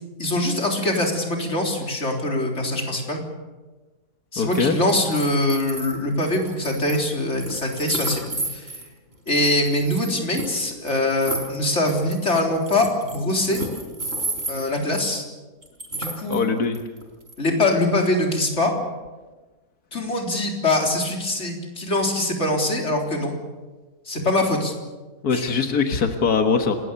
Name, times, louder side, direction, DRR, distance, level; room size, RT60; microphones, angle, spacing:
voice 1, 0.2-3.2 4.3-8.7 9.3-13.6 14.5-15.2 15.9-16.4 17.4-18.7 19.9-23.3 24.1-24.7 25.3-25.5, left 1 dB, 50° left, 1 dB, 4.1 m, -23 dB
voice 2, 4.4-4.8 16.3-16.8 25.2-26.8, left 5 dB, 90° left, 5 dB, 2.0 m, -21 dB
sound 1, 4.5-4.6 4.9-8.9 9.3-15.1 15.6-16.4 16.7-17.3, right 2 dB, 45° right, 4.3 m, -32 dB
27.5 x 20.0 x 6.9 m, 1.2 s
omnidirectional pair, 1.6 m